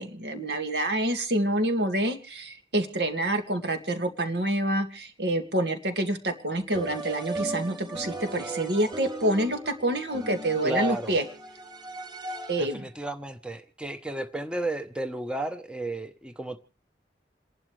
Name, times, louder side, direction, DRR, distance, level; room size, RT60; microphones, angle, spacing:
voice 1, 0.0-11.2 12.5-12.8, right 1 dB, 65° right, 6 dB, 2.2 m, -27 dB
sound 1, 6.7-12.8, right 2 dB, 25° right, 3.7 m, -37 dB
voice 2, 10.6-11.1 12.6-16.6, right 1 dB, 5° right, 8 dB, 0.9 m, -33 dB
29.0 x 11.5 x 3.3 m, 0.35 s
head